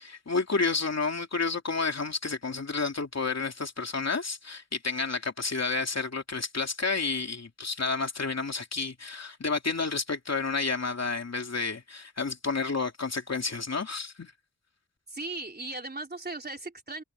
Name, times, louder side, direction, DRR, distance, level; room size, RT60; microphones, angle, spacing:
voice 1, 0.0-14.3, left 4 dB, 55° left, 3.0 m, -30 dB
voice 2, 15.1-17.0, right 2 dB, 30° right, 3.7 m, -37 dB
wide cardioid pair, 90°, 31 cm